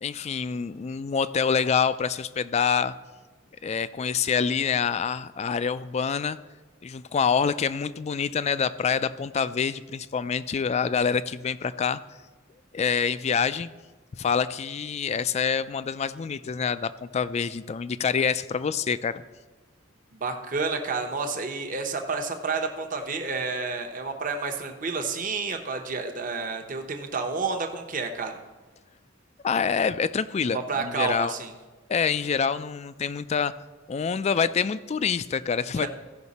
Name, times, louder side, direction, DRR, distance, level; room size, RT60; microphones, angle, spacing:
voice 1, 0.0-2.9 3.6-6.4 6.8-12.0 12.7-13.7 14.2-19.2 29.4-31.3 31.9-33.5 33.9-35.9, left 6 dB, 35° left, 15 dB, 0.3 m, -26 dB
voice 2, 20.1-28.4 30.5-31.5 35.8-35.9, right 4 dB, 45° right, 4 dB, 0.9 m, -30 dB
15.0 x 5.7 x 4.1 m, 1.3 s
head